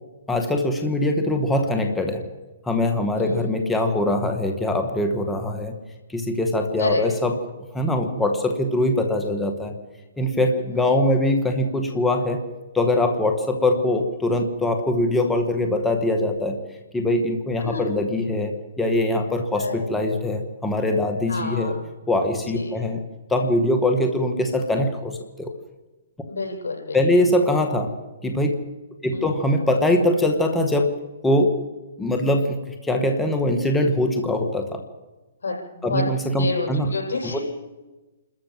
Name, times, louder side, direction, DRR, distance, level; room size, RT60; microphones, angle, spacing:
voice 1, 0.3-2.2 2.7-5.7 6.1-7.3 7.7-9.7 10.2-12.4 12.7-16.6 16.9-21.7 22.1-23.0 23.3-25.5 26.9-27.9 28.2-28.6 29.0-30.9 31.2-31.6 32.0-34.8 35.8-36.9 37.2-37.4, left 1 dB, 5° left, 4 dB, 2.0 m, -22 dB
voice 2, 3.1-3.5 6.8-7.0 10.7-10.9 17.6-17.9 19.5-20.0 21.3-21.8 22.4-22.8 26.3-27.0 29.1-29.3 35.4-36.0 36.4-37.4, left 3 dB, 85° left, 2 dB, 7.8 m, -29 dB
28.5 x 14.0 x 7.7 m, 1.2 s
hypercardioid pair, 140°, 0 cm